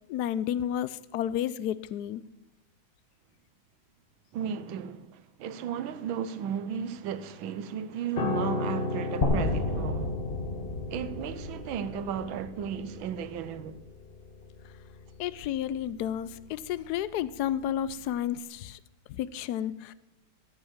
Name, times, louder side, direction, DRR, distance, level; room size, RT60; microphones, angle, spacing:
voice 1, 0.1-2.2 15.2-18.8 19.1-19.9, left 10 dB, 75° left, 0.9 m, -31 dB
voice 2, 4.3-10.1 10.9-13.8, right 8 dB, 75° right, 1.6 m, -35 dB
Piano, 8.2-17.5 17.8-18.1, left 2 dB, 50° left, 0.7 m, -36 dB
sound 1, 9.2-13.2, left 2 dB, 30° left, 1.3 m, -32 dB
15.5 x 6.5 x 7.3 m
omnidirectional pair, 2.2 m